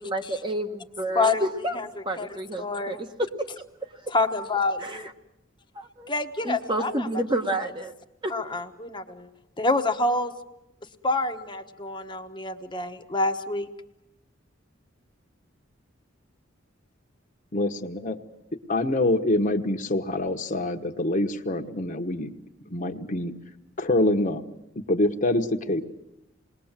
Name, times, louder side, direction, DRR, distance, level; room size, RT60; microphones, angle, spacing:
voice 1, 0.0-1.8 2.0-3.5 4.1-4.2 4.8-5.0 5.7-6.1 6.4-7.9 8.2-8.3, right 1 dB, 25° right, 4 dB, 1.2 m, -29 dB
voice 2, 2.6-3.0 4.1-5.1 6.1-7.1 8.3-9.3 9.6-10.3 11.0-13.7, left 2 dB, 25° left, 5 dB, 1.1 m, -27 dB
voice 3, 17.5-18.2 18.7-22.3 22.7-23.3 23.8-24.4 24.9-25.8, left 1 dB, 45° left, 4 dB, 1.3 m, -25 dB
28.0 x 20.5 x 7.4 m, 0.87 s
head